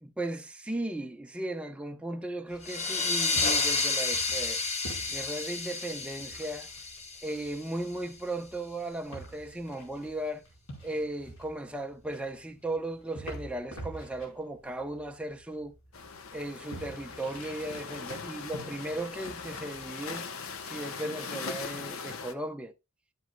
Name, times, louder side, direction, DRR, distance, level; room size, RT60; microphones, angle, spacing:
voice 1, 0.0-4.6 5.1-6.7 7.2-10.4 10.8-15.7 16.3-20.3 20.6-22.7, right 1 dB, 5° right, 0.6 m, -36 dB
sound 1, 2.5-20.1, right 1 dB, 85° left, 4.5 m, -48 dB
sound 2, 2.6-7.9, left 4 dB, 30° left, 1.1 m, -31 dB
sound 3, 15.9-22.3, left 5 dB, 70° left, 0.8 m, -40 dB
12.0 x 7.7 x 2.3 m
head